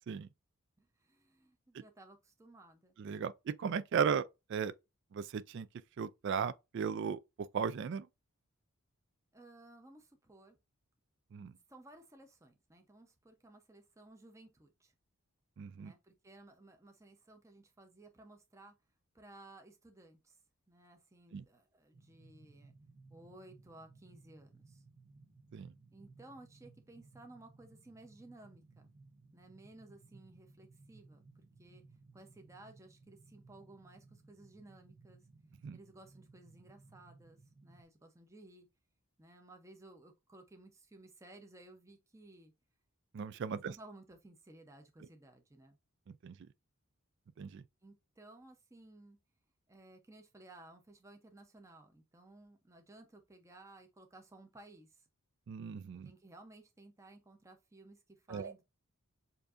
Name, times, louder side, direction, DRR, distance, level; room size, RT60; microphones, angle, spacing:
voice 1, 0.8-2.9 9.3-10.6 11.5-14.9 15.8-18.7 19.1-20.4 20.7-22.7 23.1-24.8 25.9-28.8 29.3-31.8 32.1-35.2 35.7-38.7 39.2-42.5 43.5-45.8 47.8-49.2 49.7-55.1 56.0-58.6, right 2 dB, 15° right, 0.6 m, -57 dB
voice 2, 3.0-4.7 5.1-5.7 6.0-8.1 11.3-11.5 15.6-15.9 21.3-21.4 25.5-25.7 35.6-35.8 43.1-43.7 46.2-46.3 47.4-47.6 55.5-56.1 58.3-58.5, right 6 dB, 50° right, 0.3 m, -36 dB
sound 1, 21.9-37.8, right 3 dB, 70° right, 1.0 m, -61 dB
6.9 x 2.6 x 2.5 m
head